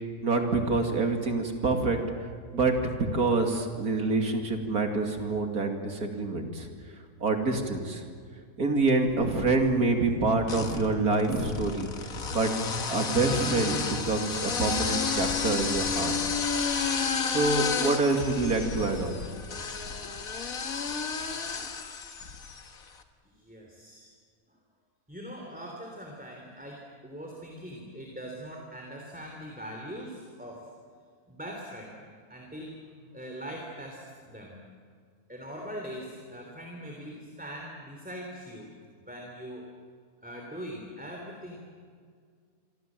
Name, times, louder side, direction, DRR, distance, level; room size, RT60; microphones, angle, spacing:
voice 1, 0.2-2.0 2.5-6.7 7.2-8.0 8.6-11.9 12.3-12.5 12.9-16.1 17.3-19.2, right 3 dB, 75° right, 4 dB, 2.9 m, -26 dB
sound 1, 9.1-9.7 10.4-22.7, left 5 dB, 65° left, 1.9 m, -31 dB
voice 2, 23.2-24.1 25.1-30.7 31.3-32.0 32.3-32.8 33.1-34.6 35.3-38.7 39.0-39.7 40.2-41.6, equal, 5° right, 0 dB, 3.2 m, -41 dB
27.0 x 25.0 x 7.6 m, 2.1 s
omnidirectional pair, 1.6 m